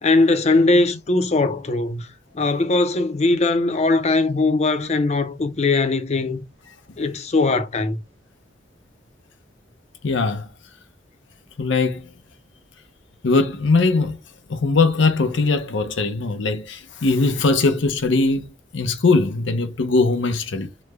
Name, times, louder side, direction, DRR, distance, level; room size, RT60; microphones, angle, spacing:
voice 1, 0.0-2.1 2.3-6.4 7.0-8.0, left 3 dB, 35° left, 0.5 m, -20 dB
voice 2, 10.0-10.5 11.6-12.1 13.2-14.2 14.5-20.8, left 3 dB, 85° left, 0.7 m, -20 dB
3.1 x 2.2 x 3.3 m
head